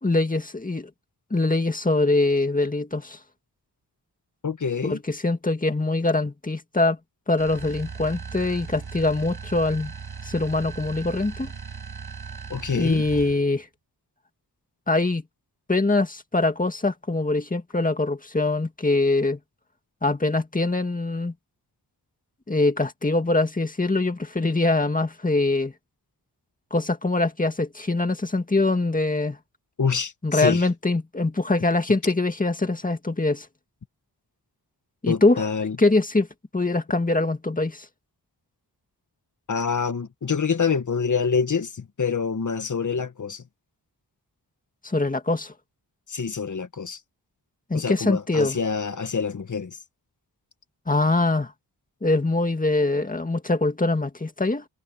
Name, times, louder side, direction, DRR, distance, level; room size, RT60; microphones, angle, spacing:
voice 1, 0.0-0.9 1.3-3.2 4.8-7.0 7.3-9.9 10.2-11.5 12.7-13.7 14.9-15.2 15.7-19.4 20.0-21.3 22.5-25.7 26.7-29.4 30.2-33.5 35.0-35.5 35.8-36.3 36.5-37.9 44.8-45.5 47.7-48.6 50.9-51.5 52.0-54.6, left 2 dB, 20° left, 2.0 m, -23 dB
voice 2, 4.4-5.0 12.5-13.0 29.8-30.6 35.1-35.8 39.5-43.4 46.1-47.0 47.7-49.8, left 5 dB, 50° left, 1.5 m, -26 dB
sound 1, 7.4-13.5, right 5 dB, 70° right, 7.0 m, -38 dB
wide cardioid pair, 120°, 40 cm